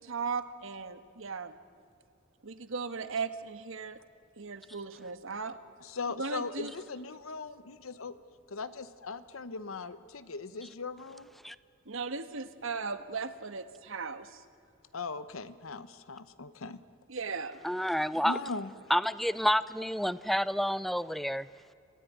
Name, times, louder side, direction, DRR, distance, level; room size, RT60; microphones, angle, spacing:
voice 1, 0.0-1.6 2.4-4.0 4.4-5.6 6.1-6.7 11.8-14.4 17.1-17.6, right 4 dB, 70° right, 11 dB, 1.4 m, -37 dB
voice 2, 5.8-8.2 8.5-11.3 14.9-16.8 18.2-18.7, left 4 dB, 85° left, 13 dB, 1.0 m, -39 dB
voice 3, 17.6-18.4 18.9-21.5, equal, ahead, 17 dB, 0.5 m, -29 dB
26.5 x 16.5 x 9.4 m, 2.5 s
head